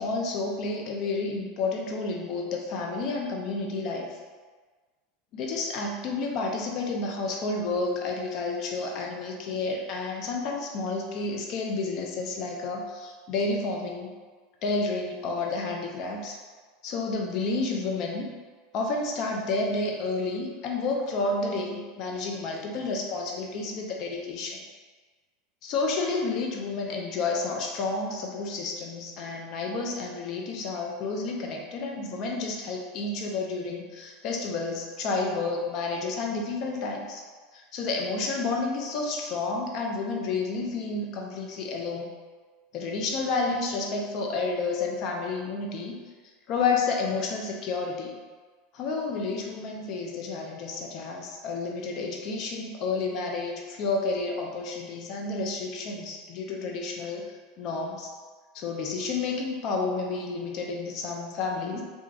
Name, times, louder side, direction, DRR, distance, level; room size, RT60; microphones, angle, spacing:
voice 1, 0.0-4.2 5.3-14.1 14.6-16.4 16.8-18.3 18.7-24.6 25.6-37.2 37.5-42.1 42.7-46.0 46.5-48.1 48.7-57.2 57.6-58.1 58.5-61.8, left 3 dB, 50° left, 1 dB, 0.5 m, -30 dB
2.8 x 2.4 x 2.4 m, 1.4 s
hypercardioid pair, 90°, 0 cm